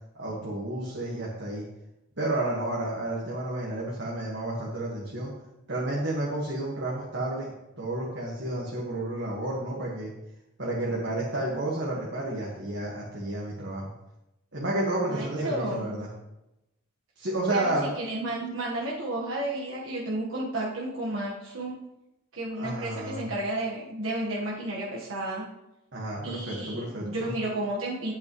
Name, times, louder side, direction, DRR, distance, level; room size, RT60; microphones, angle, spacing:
voice 1, 0.1-1.6 2.2-5.3 5.7-7.5 7.8-10.1 10.6-13.9 14.5-16.1 17.2-17.9 22.6-23.3 25.9-27.4, right 1 dB, 55° right, -4 dB, 1.7 m, -31 dB
voice 2, 15.1-15.9 17.5-21.8 22.3-25.4 26.2-28.1, right 1 dB, 80° right, -5 dB, 1.5 m, -32 dB
11.0 x 8.6 x 3.2 m, 0.92 s
head